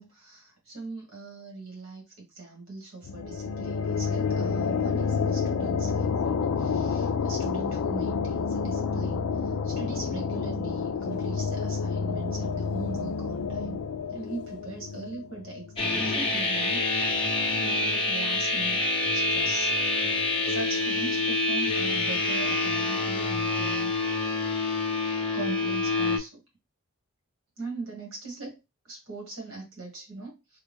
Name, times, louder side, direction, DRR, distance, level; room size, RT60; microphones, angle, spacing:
voice 1, 0.0-2.0 2.3-13.8 14.1-18.8 19.1-19.8 20.5-24.2 25.3-26.4 27.6-28.6 28.8-30.6, right 3 dB, 65° right, 0 dB, 1.7 m, -40 dB
sound 1, 3.0-16.4, left 5 dB, 75° left, 0.3 m, -29 dB
sound 2, 15.8-26.2, left 2 dB, 25° left, 0.6 m, -27 dB
3.4 x 2.3 x 3.5 m, 0.24 s
head